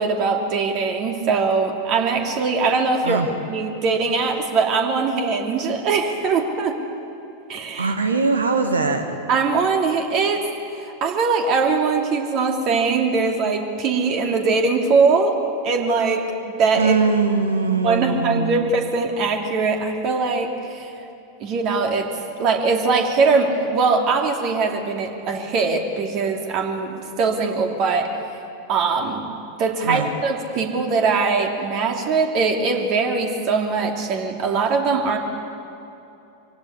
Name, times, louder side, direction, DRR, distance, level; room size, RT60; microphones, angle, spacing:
voice 1, 0.0-3.2 3.5-6.8 7.5-7.9 9.3-10.4 11.0-15.4 15.6-16.9 17.8-20.9 21.4-22.1 22.4-28.1 28.7-29.3 29.6-35.2, right 4 dB, 40° right, 3 dB, 2.7 m, -21 dB
voice 2, 7.8-9.2 16.7-18.7 29.8-30.1, right 4 dB, 75° right, 6 dB, 1.7 m, -21 dB
24.5 x 16.5 x 9.7 m, 2.8 s
figure-of-eight pair, 90°, 0 cm